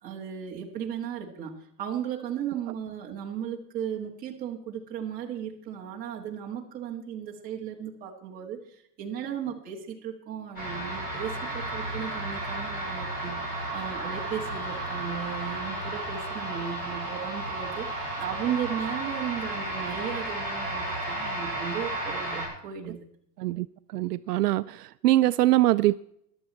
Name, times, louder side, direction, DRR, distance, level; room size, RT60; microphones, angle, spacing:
voice 1, 0.0-1.5 1.8-23.0, right 9 dB, 15° right, 1.7 m, -35 dB
sound 1, 10.5-22.5, right 1 dB, 20° left, 6.9 m, -33 dB
voice 2, 23.9-26.0, right 16 dB, 70° right, 0.6 m, -23 dB
15.0 x 11.5 x 4.2 m
supercardioid pair, 170°, 49 cm